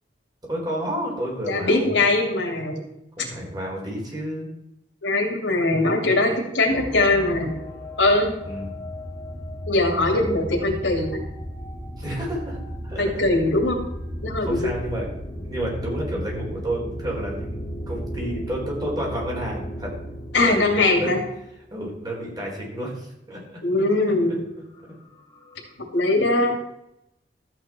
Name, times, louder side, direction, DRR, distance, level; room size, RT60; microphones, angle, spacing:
voice 1, 0.5-2.0 3.2-4.5 8.4-8.8 12.0-12.6 12.8-13.1 14.4-15.1 15.4-19.9 20.3-21.1 21.7-23.6 24.1-24.2, right 1 dB, 25° right, -2 dB, 3.9 m, -30 dB
voice 2, 1.5-2.8 5.0-7.5 8.0-8.3 9.7-11.2 13.0-13.8 14.2-14.7 20.3-21.2 23.6-24.4 25.9-26.6, left 2 dB, 85° left, 1 dB, 2.6 m, -21 dB
sound 1, 6.7-21.5 24.8-24.9 25.1-25.7, equal, 20° left, 2.2 m, -35 dB
13.5 x 8.5 x 4.4 m, 0.82 s
head